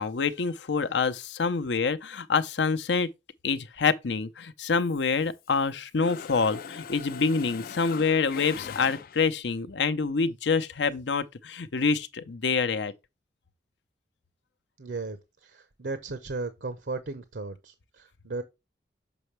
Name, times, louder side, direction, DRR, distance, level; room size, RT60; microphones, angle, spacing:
voice 1, 0.0-3.1 3.4-12.9, left 5 dB, 80° left, 0.7 m, -26 dB
Mechanisms, 4.7-5.7 6.0-9.5, left 6 dB, 50° left, 0.3 m, -42 dB
voice 2, 14.8-18.4, right 3 dB, 75° right, 0.8 m, -36 dB
6.9 x 5.3 x 3.2 m
head